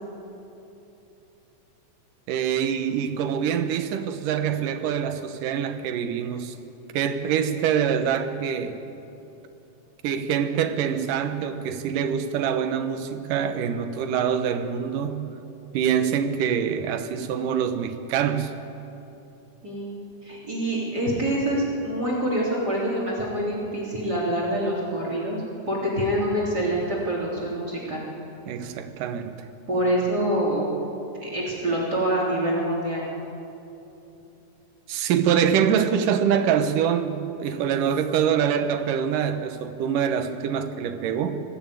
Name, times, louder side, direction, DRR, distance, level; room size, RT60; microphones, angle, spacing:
voice 1, 2.3-6.6 6.9-8.8 10.0-15.3 15.7-18.5 28.5-29.4 34.9-41.4, right 8 dB, 90° right, 8 dB, 2.7 m, -25 dB
voice 2, 19.6-28.0 29.7-30.7 31.2-33.0, right 1 dB, 30° right, -4 dB, 3.6 m, -26 dB
19.5 x 15.0 x 9.2 m, 2.9 s
omnidirectional pair, 3.7 m